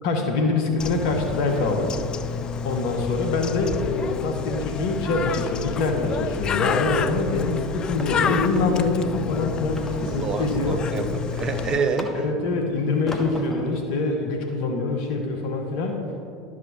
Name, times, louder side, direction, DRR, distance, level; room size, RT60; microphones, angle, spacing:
voice 1, 0.0-2.0 2.6-10.8 12.2-16.1, left 3 dB, 65° left, 3 dB, 1.1 m, -24 dB
Bird, 0.8-11.8, left 7 dB, 35° left, 0.4 m, -30 dB
sound 1, 3.5-5.1 5.6-5.8 6.3-7.2 7.6-7.7 8.0-8.7 9.8-10.5 10.9-12.5 13.1-13.8, left 1 dB, 15° left, 1.2 m, -39 dB
voice 2, 10.0-12.1, right 4 dB, 35° right, 6 dB, 1.0 m, -27 dB
11.5 x 6.1 x 4.4 m, 2.7 s
figure-of-eight pair, 70°, 2 cm